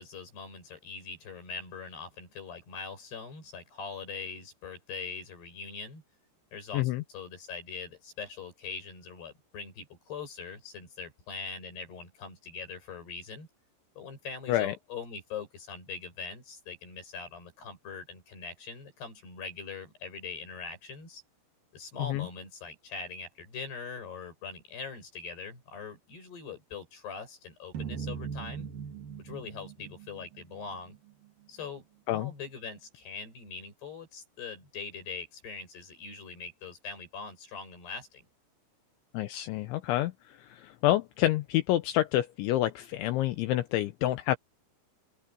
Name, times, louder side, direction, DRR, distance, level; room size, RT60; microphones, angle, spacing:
voice 1, 0.0-6.0 6.5-13.5 14.0-21.2 21.7-28.7 29.2-31.0 31.5-31.9 32.1-38.3, left 5 dB, 55° left, 8.9 m, -42 dB
voice 2, 6.7-7.0 14.5-14.7 22.0-22.3 32.1-32.3 39.1-44.4, left 14 dB, 80° left, 3.0 m, -28 dB
sound 1, 27.7-31.0, right 7 dB, 50° right, 3.9 m, -40 dB
open air
omnidirectional pair, 5.8 m